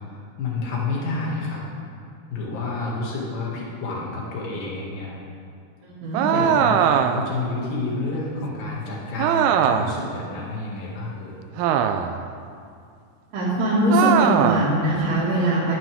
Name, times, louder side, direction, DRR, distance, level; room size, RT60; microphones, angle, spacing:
voice 1, 0.1-1.6 2.3-5.1 6.3-11.4, left 3 dB, 60° left, -4 dB, 3.6 m, -29 dB
voice 2, 5.9-6.2 13.3-15.7, equal, 60° right, -10 dB, 3.7 m, -21 dB
sound 1, 6.1-7.4 9.2-10.0 11.6-12.2 13.9-14.7, right 8 dB, 80° right, 2.5 m, -20 dB
12.5 x 12.0 x 3.6 m, 2.4 s
omnidirectional pair, 4.7 m